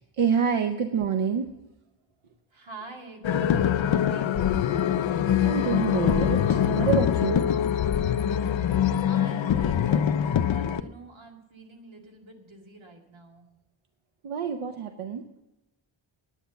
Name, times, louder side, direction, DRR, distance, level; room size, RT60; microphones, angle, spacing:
voice 1, 0.0-1.5 5.4-7.5 14.2-15.2, right 7 dB, 90° right, 7 dB, 0.8 m, -27 dB
voice 2, 2.2-4.5 8.1-8.4 9.1-13.5, right 2 dB, 65° right, 1 dB, 2.4 m, -46 dB
sound 1, 3.2-10.8, left 9 dB, 70° left, 0.6 m, -24 dB
10.0 x 9.1 x 7.0 m, 0.98 s
wide cardioid pair, 100°, 49 cm